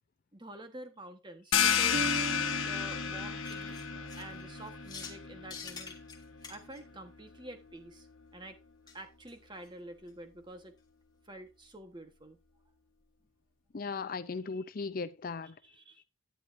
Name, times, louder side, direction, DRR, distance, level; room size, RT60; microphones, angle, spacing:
voice 1, 0.3-6.0 6.5-8.1 8.3-8.6 8.9-10.7 11.2-12.4 15.7-16.0, right 1 dB, 20° right, 1.3 m, -48 dB
sound 1, 1.5-6.9, left 8 dB, 75° left, 1.2 m, -32 dB
sound 2, 1.9-5.7, right 3 dB, 65° right, 1.7 m, -42 dB
sound 3, 3.4-5.2 5.5-6.8 8.9-9.0 9.3-9.4 9.6-9.7 10.1-10.2, left 5 dB, 20° left, 1.5 m, -47 dB
voice 2, 13.7-15.6, left 4 dB, 45° left, 0.5 m, -37 dB
11.0 x 9.8 x 2.6 m
head